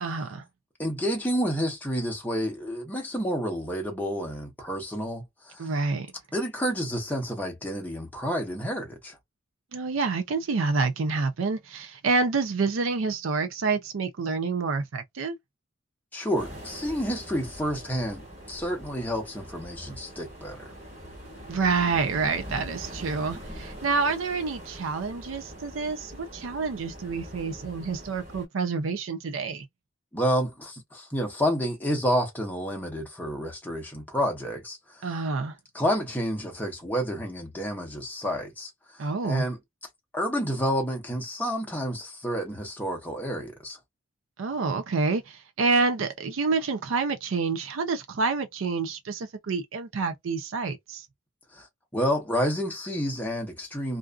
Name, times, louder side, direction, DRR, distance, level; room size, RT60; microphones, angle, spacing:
voice 1, 0.0-0.4 5.6-6.1 9.7-15.4 21.5-29.7 35.0-35.6 39.0-39.4 44.4-51.1, right 4 dB, 80° right, 0.5 m, -28 dB
voice 2, 0.8-5.7 6.3-9.2 16.1-20.7 30.1-34.8 35.7-38.7 39.2-39.6 40.1-43.8 51.5-51.7 51.9-54.0, equal, 10° left, 0.8 m, -29 dB
sound 1, 16.3-28.5, equal, 35° right, 1.4 m, -43 dB
2.5 x 2.4 x 2.3 m
head